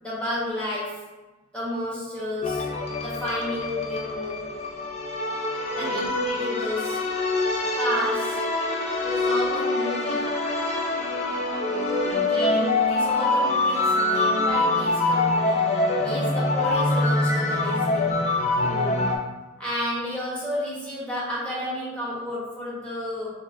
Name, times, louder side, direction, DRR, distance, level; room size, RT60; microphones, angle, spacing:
voice 1, 0.0-1.1 1.5-2.7 3.0-4.6 5.7-7.1 7.7-8.5 9.0-10.3 12.1-15.8 16.0-18.2 19.6-23.3, left 1 dB, 5° left, -8 dB, 1.1 m, -31 dB
sound 1, 2.4-19.2, left 2 dB, 35° left, 0.4 m, -25 dB
voice 2, 11.6-12.6 16.0-16.3 18.5-19.1, right 3 dB, 90° right, 5 dB, 0.4 m, -36 dB
3.9 x 3.3 x 2.6 m, 1.1 s
head